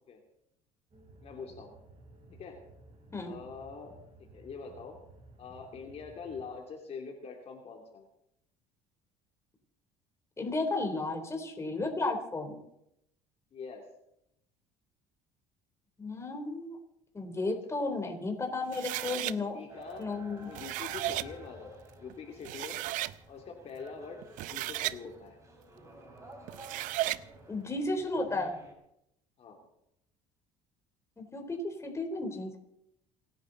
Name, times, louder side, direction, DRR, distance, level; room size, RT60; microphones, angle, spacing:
sound 1, 0.9-6.5, right 2 dB, 45° right, 7.5 m, -56 dB
voice 1, 1.2-1.7 2.3-2.6 3.2-3.9 4.3-5.0 5.4-8.1 13.5-13.9 19.1-20.1 20.4-22.8 23.3-24.2 24.5-25.4 29.4-29.6, left 5 dB, 45° left, 1 dB, 3.0 m, -44 dB
voice 2, 10.4-12.6 16.0-16.8 17.1-19.6 20.0-20.5 27.5-28.5 31.2-32.6, left 2 dB, 20° left, 3 dB, 3.7 m, -33 dB
sound 2, 18.7-19.4 20.4-21.3 22.1-22.2 22.5-23.2 24.2-25.0 26.5-27.2, right 16 dB, 70° right, 0.6 m, -34 dB
sound 3, 19.7-28.7, right 2 dB, 20° right, 4.7 m, -52 dB
28.5 x 10.0 x 4.1 m, 0.79 s
supercardioid pair, 95°, 14 cm